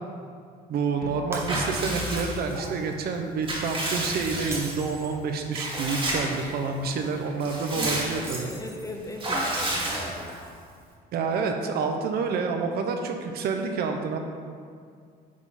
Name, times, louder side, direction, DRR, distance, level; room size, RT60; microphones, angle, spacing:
voice 1, 0.7-8.5 11.1-14.2, right 4 dB, 65° right, 4 dB, 0.8 m, -28 dB
sound 1, 1.0-7.0, left 2 dB, 65° left, 0.6 m, -43 dB
Shatter, 1.3-2.1 2.5-2.7 4.3-5.2 8.2-9.1, right 2 dB, 15° right, 1.0 m, -39 dB
Water / Bathtub (filling or washing) / Liquid, 1.5-2.7 3.2-4.9 5.5-6.5 6.8-6.9 7.3-8.4 9.2-10.5, right 1 dB, 30° right, 1.8 m, -30 dB
voice 2, 8.2-10.4, left 2 dB, 20° left, 2 dB, 0.8 m, -39 dB
9.6 x 3.8 x 4.2 m, 2.2 s
cardioid pair, 110°, 17 cm